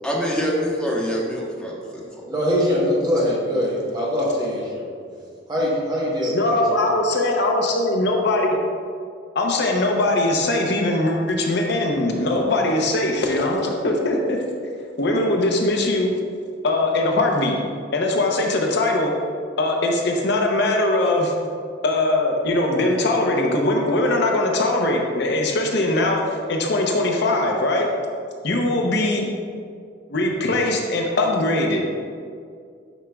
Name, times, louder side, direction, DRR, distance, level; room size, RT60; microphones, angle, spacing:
voice 1, 0.0-2.0, equal, 5° left, -5 dB, 1.0 m, -25 dB
voice 2, 2.2-4.9 5.5-6.8, equal, 20° right, -4 dB, 1.1 m, -23 dB
voice 3, 6.3-8.6 9.3-14.4 15.0-16.1 16.6-17.6 17.9-19.1 19.6-21.3 21.8-27.9 28.4-29.3 30.1-31.8, left 2 dB, 60° left, 1 dB, 0.7 m, -21 dB
8.9 x 5.0 x 2.3 m, 2.2 s
head